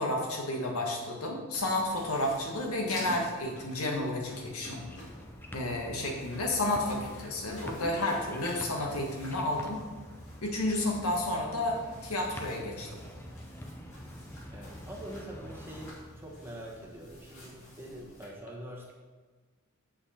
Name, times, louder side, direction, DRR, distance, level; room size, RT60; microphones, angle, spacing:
voice 1, 0.0-4.8 5.5-9.8 10.4-13.0, left 1 dB, 80° left, 0 dB, 1.5 m, -31 dB
sound 1, 1.5-18.3, equal, 60° left, 2.3 m, -49 dB
sound 2, 4.8-15.9, left 1 dB, 10° left, 0.5 m, -46 dB
voice 2, 14.5-18.9, right 1 dB, 10° right, -2 dB, 1.1 m, -44 dB
7.8 x 5.8 x 4.3 m, 1.4 s
head